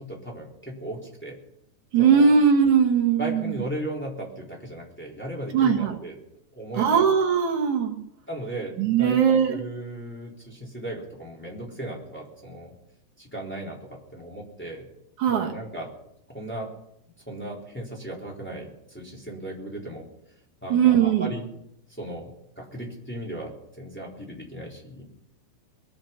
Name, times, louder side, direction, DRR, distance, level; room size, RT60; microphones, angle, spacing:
voice 1, 0.0-1.4 2.0-2.4 3.2-6.2 6.5-7.0 8.3-9.2 9.5-12.7 13.2-14.9 15.3-15.9 16.3-16.7 17.3-20.0 20.6-21.5 22.0-22.3 22.6-25.0, right 1 dB, 5° left, -3 dB, 3.3 m, -36 dB
voice 2, 1.9-3.6 5.5-6.0 6.8-8.0 8.8-9.6 15.2-15.5 20.7-21.3, right 7 dB, 55° right, 1 dB, 2.9 m, -20 dB
22.5 x 9.0 x 5.9 m, 0.76 s
omnidirectional pair, 4.8 m